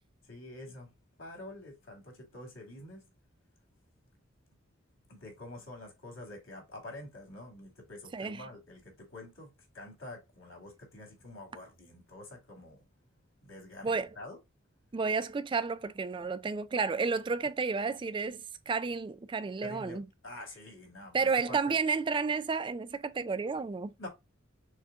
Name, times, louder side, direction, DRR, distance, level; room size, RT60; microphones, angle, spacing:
voice 1, 0.2-0.9 1.2-3.0 5.1-12.8 13.4-14.4 19.6-21.8 24.0-24.1, left 1 dB, 90° left, 2.4 m, -47 dB
voice 2, 8.1-8.4 13.8-14.1 14.9-20.0 21.1-23.9, right 4 dB, 25° right, 0.3 m, -31 dB
6.3 x 2.2 x 3.5 m
head